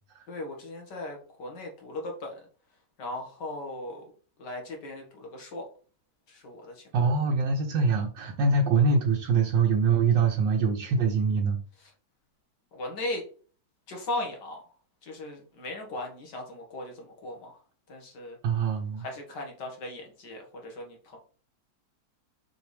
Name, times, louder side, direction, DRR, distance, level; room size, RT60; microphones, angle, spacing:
voice 1, 0.3-2.5 3.0-4.1 4.4-5.7 6.3-6.9 12.7-13.2 13.9-14.6 15.0-17.6 17.9-18.4 19.0-21.2, left 2 dB, 65° left, 1 dB, 2.3 m, -37 dB
voice 2, 6.9-11.6 18.4-19.0, right 4 dB, 75° right, 0 dB, 1.6 m, -24 dB
6.2 x 5.4 x 3.3 m, 0.41 s
omnidirectional pair, 2.0 m